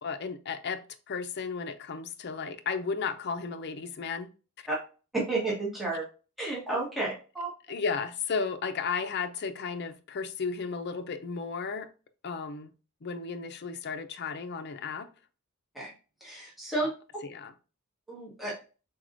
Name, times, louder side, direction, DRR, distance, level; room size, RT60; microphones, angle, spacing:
voice 1, 0.0-0.8 1.1-4.3 7.7-11.9 12.2-12.7 13.0-15.1 16.8-16.9 17.2-17.5, left 5 dB, 50° left, 0.5 m, -34 dB
voice 2, 5.1-6.0 6.4-7.5 15.7-15.9 16.2-16.9 18.1-18.6, right 2 dB, ahead, 1.4 m, -31 dB
4.6 x 4.1 x 2.5 m
head